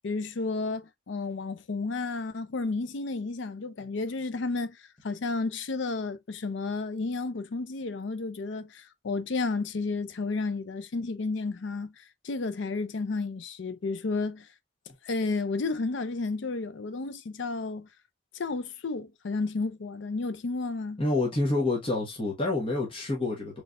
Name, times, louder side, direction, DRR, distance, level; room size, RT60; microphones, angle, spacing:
voice 1, 0.0-4.8 5.0-11.9 12.2-14.5 15.0-17.9 18.3-21.0, left 3 dB, 70° left, 0.5 m, -32 dB
voice 2, 21.0-23.6, left 2 dB, 25° left, 1.2 m, -28 dB
4.1 x 3.3 x 2.3 m
head